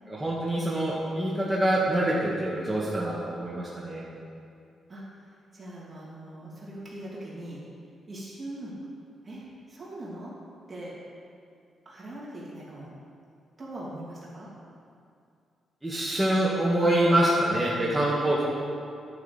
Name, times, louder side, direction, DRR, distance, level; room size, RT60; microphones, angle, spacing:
voice 1, 0.1-4.0 15.8-18.4, right 1 dB, 5° right, -7 dB, 1.7 m, -25 dB
voice 2, 5.5-7.6 8.1-8.7 9.2-10.3 10.7-10.9 11.8-12.9 13.6-14.5 18.2-18.4, right 1 dB, 25° right, -6 dB, 2.9 m, -41 dB
10.5 x 6.3 x 8.0 m, 2.4 s
cardioid pair, 115°, 0 cm